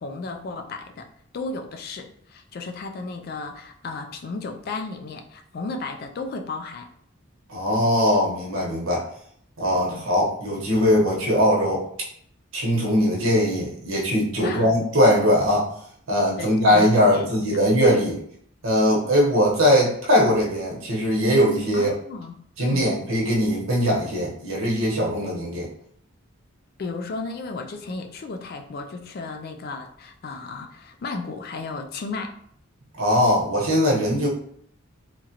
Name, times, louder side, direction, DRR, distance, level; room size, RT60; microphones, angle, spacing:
voice 1, 0.0-1.1 1.3-6.9 9.9-10.1 14.4-14.7 16.4-17.6 21.7-22.4 22.7-23.0 26.8-32.3, left 3 dB, 45° left, 4 dB, 0.3 m, -34 dB
voice 2, 7.5-9.1 9.6-11.9 12.5-15.7 16.1-18.2 18.6-21.9 22.6-25.7 32.9-34.3, equal, 75° right, -3 dB, 1.0 m, -20 dB
2.9 x 2.4 x 2.8 m, 0.65 s
head